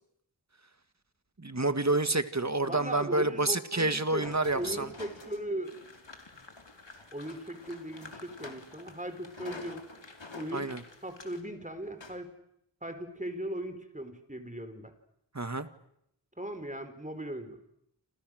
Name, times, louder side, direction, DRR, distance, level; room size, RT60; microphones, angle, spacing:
voice 1, 1.4-4.9 10.5-10.8 15.3-15.7, right 2 dB, 40° right, 10 dB, 1.8 m, -28 dB
voice 2, 2.6-4.3 4.5-5.8 7.1-9.8 10.3-10.7 11.0-12.3 12.8-14.9 16.4-17.6, right 1 dB, 15° right, 8 dB, 4.3 m, -38 dB
sound 1, 4.2-9.0 9.2-10.6 11.1-11.2 11.8-12.2, left 2 dB, 90° left, 3.3 m, -48 dB
sound 2, 5.6-11.4, left 3 dB, 70° left, 3.7 m, -53 dB
29.0 x 28.0 x 6.5 m, 0.76 s
wide cardioid pair, 40°, 44 cm